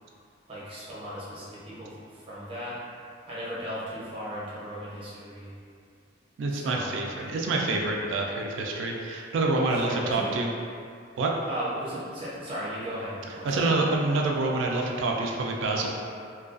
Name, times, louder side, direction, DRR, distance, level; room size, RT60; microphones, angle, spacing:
voice 1, 0.5-2.8 3.3-5.5 6.5-7.0 9.6-10.3 11.5-14.1, equal, 30° right, -9 dB, 0.6 m, -36 dB
voice 2, 6.4-10.5 11.2-11.3 13.4-15.9, right 2 dB, 80° right, 0 dB, 0.3 m, -27 dB
2.3 x 2.2 x 2.4 m, 2.3 s
head